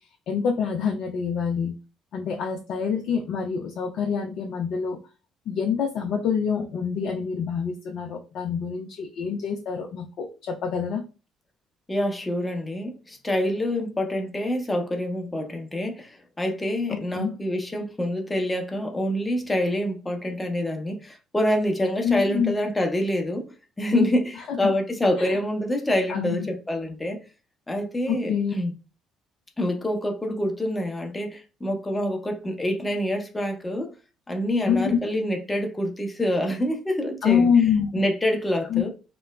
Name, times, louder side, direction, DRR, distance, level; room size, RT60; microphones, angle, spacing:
voice 1, 0.3-1.7 2.1-5.0 5.5-11.0 16.9-17.3 22.0-22.5 24.5-24.7 25.2-25.4 26.1-26.5 28.1-28.5 34.7-35.0 37.2-38.0 38.7-38.9, left 6 dB, 60° left, 0.4 m, -26 dB
voice 2, 11.9-16.1 16.4-23.5 23.8-27.2 27.7-28.7 29.6-33.9 34.3-37.5 37.9-38.9, left 1 dB, 20° left, 0.7 m, -26 dB
2.9 x 2.0 x 2.2 m
hypercardioid pair, 50°, 0 cm